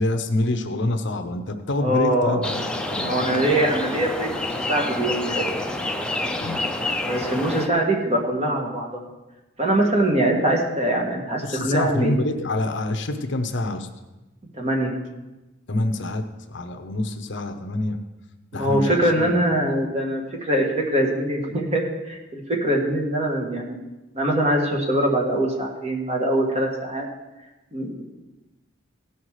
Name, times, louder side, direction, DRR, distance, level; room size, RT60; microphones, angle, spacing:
voice 1, 0.0-2.6 2.9-3.1 6.4-6.6 11.4-13.9 15.7-18.0 18.5-19.4, left 1 dB, 60° left, 7 dB, 0.8 m, -26 dB
voice 2, 1.8-2.4 3.0-5.5 7.0-9.0 9.6-12.2 14.6-15.0 18.5-23.8 24.2-27.1 27.7-28.0, right 1 dB, 35° right, -1 dB, 1.8 m, -23 dB
sound 1, 2.4-7.7, left 2 dB, 5° left, 0.6 m, -28 dB
16.5 x 5.8 x 4.8 m, 1.1 s
head